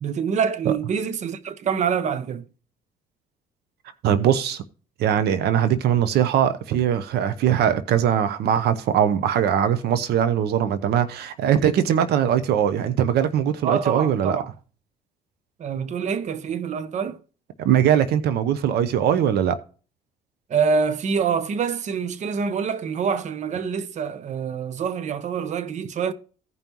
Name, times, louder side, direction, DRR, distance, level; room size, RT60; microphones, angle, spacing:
voice 1, 0.0-2.4 13.6-14.5 15.6-17.2 20.5-26.1, right 6 dB, 45° right, 0.8 m, -26 dB
voice 2, 4.0-4.6 5.0-14.4 17.6-19.6, right 9 dB, 75° right, 0.8 m, -21 dB
16.0 x 5.4 x 3.0 m
cardioid pair, 110°, 17 cm